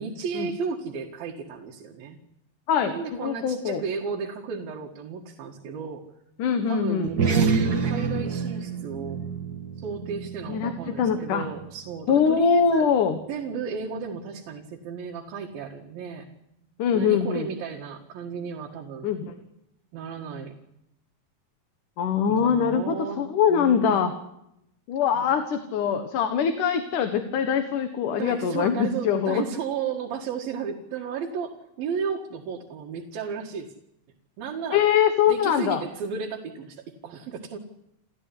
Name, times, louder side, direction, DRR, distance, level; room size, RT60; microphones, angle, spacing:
voice 1, 0.0-2.2 2.8-6.0 6.7-9.2 9.8-12.9 13.3-16.3 16.9-19.1 19.9-20.5 22.3-24.0 25.2-25.3 28.1-33.7 34.4-34.8 35.3-37.6, right 6 dB, 90° right, 0 dB, 3.7 m, -33 dB
voice 2, 2.7-3.8 6.4-7.1 10.5-11.5 12.1-13.2 16.8-17.5 19.0-19.3 22.0-24.1 24.9-29.4 34.7-35.8, left 7 dB, 65° left, 7 dB, 2.9 m, -23 dB
sound 1, 7.0-11.8, right 5 dB, 40° right, 1.5 m, -28 dB
29.5 x 14.5 x 9.9 m, 0.83 s
omnidirectional pair, 4.0 m